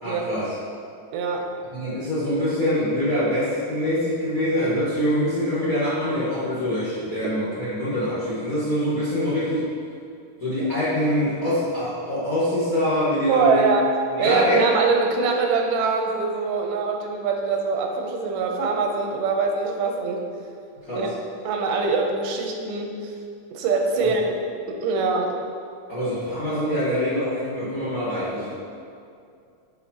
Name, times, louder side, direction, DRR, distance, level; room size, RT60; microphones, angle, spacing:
voice 1, 0.0-0.5 1.7-9.6 10.4-13.7 14.1-14.6 20.9-21.1 24.0-24.1 25.9-28.5, left 1 dB, 50° left, -11 dB, 1.0 m, -24 dB
voice 2, 1.1-1.5 13.3-13.9 14.2-20.2 20.9-21.1 21.5-23.1 23.5-24.3 24.7-25.3, right 4 dB, 90° right, 2 dB, 2.3 m, -23 dB
9.8 x 4.8 x 2.9 m, 2.3 s
omnidirectional pair, 3.7 m